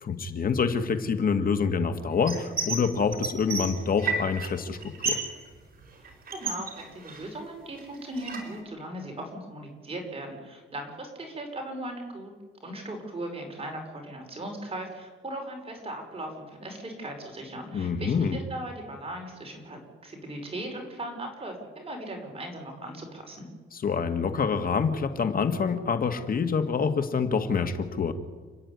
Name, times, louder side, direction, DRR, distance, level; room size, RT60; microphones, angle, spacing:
voice 1, 0.0-4.8 5.0-5.2 17.7-18.4 23.7-28.1, left 5 dB, 45° left, 8 dB, 2.0 m, -26 dB
sound 1, 2.3-2.8 3.1-4.5 4.8-5.3 5.6-7.4 7.8-8.6, right 4 dB, 45° right, 5.1 m, -31 dB
voice 2, 6.3-12.3 12.6-23.5, right 1 dB, 30° right, 2 dB, 5.3 m, -38 dB
30.0 x 10.0 x 9.7 m, 1.5 s
cardioid pair, 120°, 20 cm